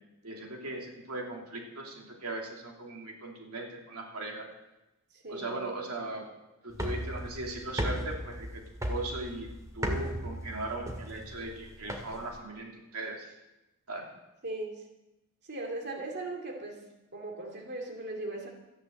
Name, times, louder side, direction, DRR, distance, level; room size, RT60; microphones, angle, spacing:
voice 1, 0.2-4.5 5.3-6.3 6.6-8.6 8.9-13.3 13.9-14.1, right 2 dB, 85° right, 1 dB, 2.8 m, -38 dB
voice 2, 5.1-5.5 14.4-14.9 15.4-16.8 17.1-18.5, right 2 dB, 50° right, 1 dB, 2.4 m, -38 dB
sound 1, 6.7-12.4, equal, 15° right, 2.0 m, -36 dB
14.0 x 10.0 x 7.7 m, 0.98 s
head